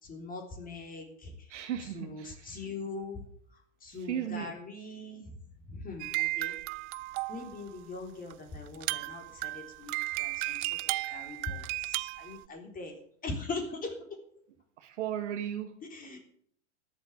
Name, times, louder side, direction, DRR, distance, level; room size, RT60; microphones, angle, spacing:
voice 1, 0.0-1.3 1.9-3.2 3.8-5.4 5.7-6.5 7.3-10.7 11.1-13.0 13.2-13.9 15.9-16.2, left 3 dB, 25° left, 4 dB, 3.5 m, -41 dB
voice 2, 1.5-2.7 3.9-4.5 14.8-15.7, right 10 dB, 75° right, 5 dB, 1.8 m, -36 dB
sound 1, 6.0-7.7 8.3-8.4 8.7-12.4, right 21 dB, 40° right, 0.5 m, -34 dB
13.5 x 8.1 x 8.3 m, 0.65 s
hypercardioid pair, 115°, 36 cm